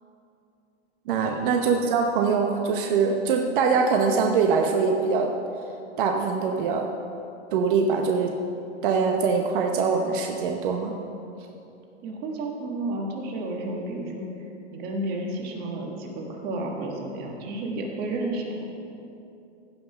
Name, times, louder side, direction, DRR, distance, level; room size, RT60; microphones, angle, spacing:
voice 1, 1.1-5.3 6.0-6.9 7.5-8.4 8.8-10.9, right 5 dB, 45° right, 3 dB, 0.9 m, -23 dB
voice 2, 12.0-14.3 14.7-18.7, right 2 dB, 25° right, 0 dB, 1.5 m, -31 dB
16.0 x 5.6 x 5.6 m, 2.7 s
hypercardioid pair, 155°, 35 cm